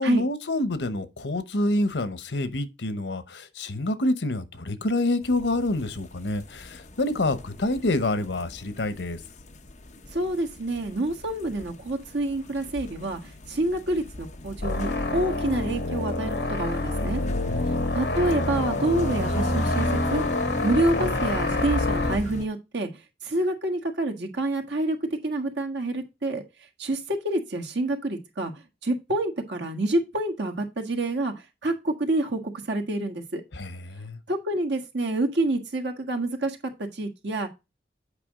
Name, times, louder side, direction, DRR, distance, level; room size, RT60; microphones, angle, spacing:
voice 1, 0.0-9.2 17.2-17.9 33.5-34.2, left 2 dB, 85° left, 0.9 m, -27 dB
sound 1, 5.2-22.5, left 1 dB, 40° left, 0.9 m, -39 dB
voice 2, 10.1-13.2 13.5-17.2 17.9-22.9 23.2-25.0 25.2-26.4 26.8-31.3 31.6-33.4 34.3-37.5, right 2 dB, 85° right, 1.6 m, -27 dB
sound 2, 14.6-22.2, left 2 dB, 60° left, 1.8 m, -27 dB
8.3 x 5.1 x 3.6 m
head